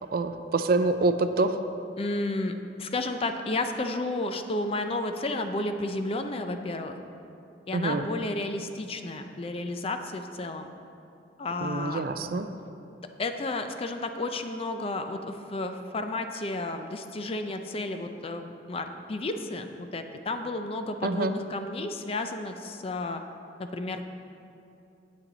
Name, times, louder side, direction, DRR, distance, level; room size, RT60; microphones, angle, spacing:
voice 1, 0.1-1.6 7.7-8.1 11.6-12.5 21.0-21.3, right 3 dB, 55° right, 10 dB, 0.4 m, -26 dB
voice 2, 2.0-7.0 7.7-10.7 11.4-12.0 13.2-23.2 23.6-24.1, left 2 dB, 35° left, 7 dB, 0.5 m, -32 dB
8.9 x 8.4 x 3.9 m, 2.8 s
head